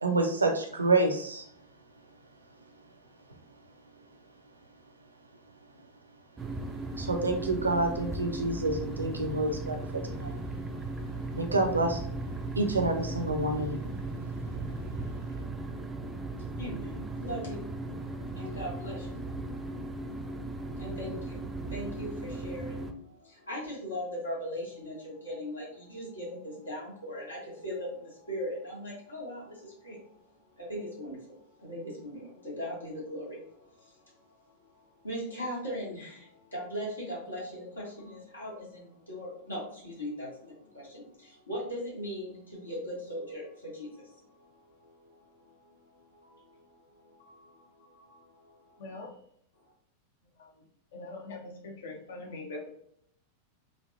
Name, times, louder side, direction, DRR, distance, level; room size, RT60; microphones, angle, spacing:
voice 1, 0.0-1.5 7.0-9.8 10.1-10.4 11.3-12.0 12.6-13.8, right 2 dB, 80° right, 4 dB, 0.5 m, -28 dB
sound 1, 6.4-22.9, right 2 dB, 15° right, 0.3 m, -37 dB
voice 2, 15.7-19.3 19.6-30.2 30.5-48.9 49.6-49.7, equal, 75° left, -5 dB, 1.4 m, -40 dB
voice 3, 48.8-49.1 50.4-50.5 50.9-52.7, left 2 dB, 60° left, 1 dB, 0.7 m, -42 dB
3.2 x 2.5 x 2.6 m, 0.67 s
figure-of-eight pair, 90°, 0 cm